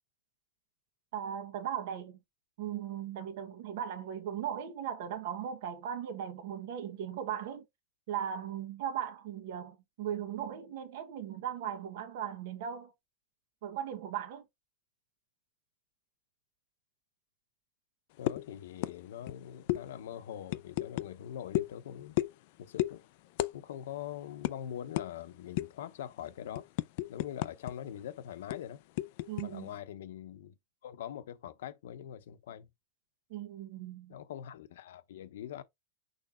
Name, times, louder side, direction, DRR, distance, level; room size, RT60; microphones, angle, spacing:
voice 1, 1.1-2.2 2.6-7.6 8.1-12.9 13.6-14.4 29.3-29.7 33.3-34.2, right 9 dB, 55° right, 1.4 m, -38 dB
voice 2, 18.2-22.2 22.6-23.0 23.5-26.6 27.1-28.8 29.4-30.5 30.8-32.7 34.1-35.6, left 10 dB, 85° left, 1.0 m, -43 dB
sound 1, 18.3-18.5 18.8-19.0 19.2-19.4 19.7-19.8 20.5-21.1 21.5-21.7 22.2-22.4 22.8-23.0 23.4-23.5 23.8-24.0 24.4-24.5 25.0-25.1 25.6-25.8 26.2-27.7 28.0-28.1 28.5-29.5, left 16 dB, 50° left, 0.5 m, -32 dB
6.6 x 3.3 x 4.4 m
supercardioid pair, 175°, 0 cm